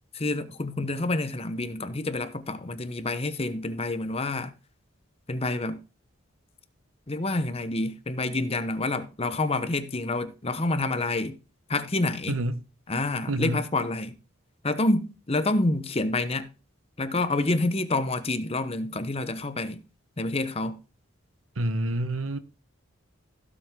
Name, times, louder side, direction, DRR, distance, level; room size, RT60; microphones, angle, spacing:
voice 1, 0.1-4.5 5.3-5.8 7.1-11.4 11.7-12.4 12.9-14.2 14.6-16.5 17.0-19.8 20.2-20.8, left 2 dB, 30° left, 0.9 m, -28 dB
voice 2, 12.3-12.6 13.3-13.7 21.6-22.4, right 1 dB, 90° right, 1.1 m, -28 dB
16.0 x 7.3 x 3.7 m
head